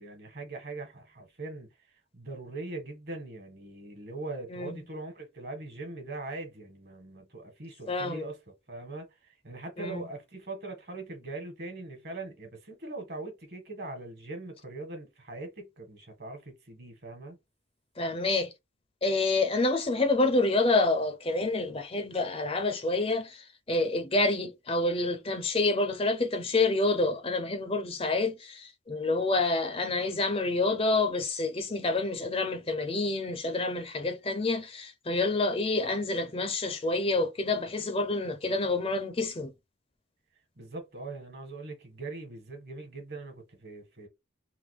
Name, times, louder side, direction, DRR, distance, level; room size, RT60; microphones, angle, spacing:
voice 1, 0.0-1.7 2.1-8.4 8.7-9.1 9.4-17.4 40.6-44.1, right 2 dB, 50° right, 1.5 m, -41 dB
voice 2, 7.9-8.3 9.8-10.0 18.0-18.5 19.0-39.5, left 2 dB, 30° left, 0.6 m, -28 dB
3.6 x 2.7 x 3.2 m
head